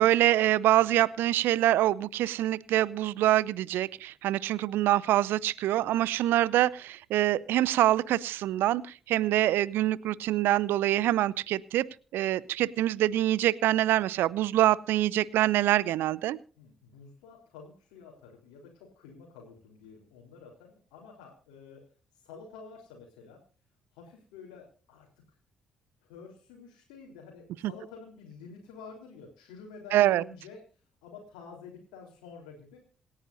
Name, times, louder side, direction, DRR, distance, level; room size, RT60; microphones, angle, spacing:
voice 1, 0.0-8.8 9.1-11.8 12.1-16.4 29.9-30.2, right 14 dB, 60° right, 22 dB, 0.6 m, -25 dB
voice 2, 16.6-21.8 22.1-23.4 23.9-25.4 26.0-32.8, left 5 dB, 70° left, -2 dB, 3.7 m, -49 dB
27.0 x 10.0 x 2.6 m, 0.39 s
figure-of-eight pair, 45°, 4 cm